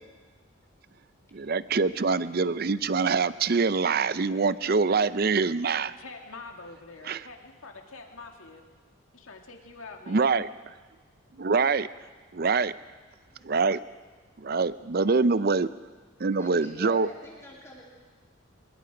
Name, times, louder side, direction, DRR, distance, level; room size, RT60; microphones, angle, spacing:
voice 1, 1.3-5.9 7.1-7.2 10.1-10.5 11.4-11.9 12.3-12.7 13.4-13.8 14.4-15.7 16.2-17.1, right 4 dB, 45° right, 16 dB, 0.5 m, -24 dB
voice 2, 5.8-8.6 9.1-10.4, left 3 dB, 80° left, 3 dB, 2.4 m, -45 dB
voice 3, 13.3-13.6 16.4-17.8, equal, 15° left, -3 dB, 3.1 m, -45 dB
24.5 x 22.0 x 5.0 m, 1.4 s
head